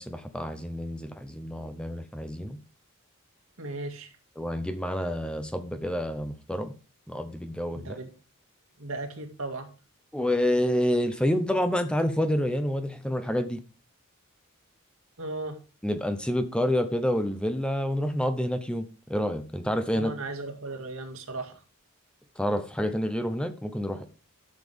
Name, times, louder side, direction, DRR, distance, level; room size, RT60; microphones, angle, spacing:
voice 1, 0.0-2.6 4.4-6.7 7.1-8.0 10.1-13.6 15.8-20.1 22.4-24.0, equal, 5° left, 9 dB, 0.7 m, -28 dB
voice 2, 3.6-4.1 7.7-8.1 8.8-9.7 15.2-15.6 19.9-21.6, right 2 dB, 80° right, 3 dB, 2.1 m, -36 dB
11.5 x 7.3 x 3.4 m, 0.34 s
head